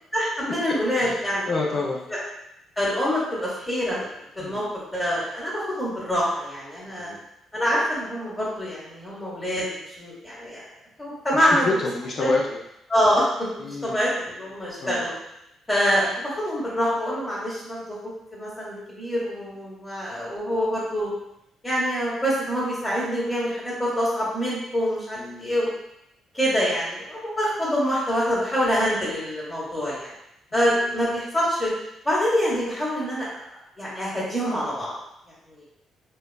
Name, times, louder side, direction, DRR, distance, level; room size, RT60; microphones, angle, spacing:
voice 1, 0.1-1.5 2.1-2.2 2.8-4.1 4.4-4.6 4.9-7.1 7.5-9.6 10.0-10.6 11.0-11.7 12.2-12.3 12.9-13.2 13.6-15.1 15.7-17.8 18.3-21.1 21.6-25.7 26.3-30.1 30.5-31.7 32.0-33.2 33.8-34.9 35.5-35.6, equal, 15° left, -7 dB, 0.8 m, -25 dB
voice 2, 0.9-2.0 4.4-4.7 6.9-7.2 11.3-12.6 13.6-14.0 14.8-15.0 25.2-25.5 30.6-31.1, left 3 dB, 50° left, -3 dB, 0.4 m, -29 dB
2.8 x 2.3 x 2.2 m, 0.82 s
cardioid pair, 90°, 0 cm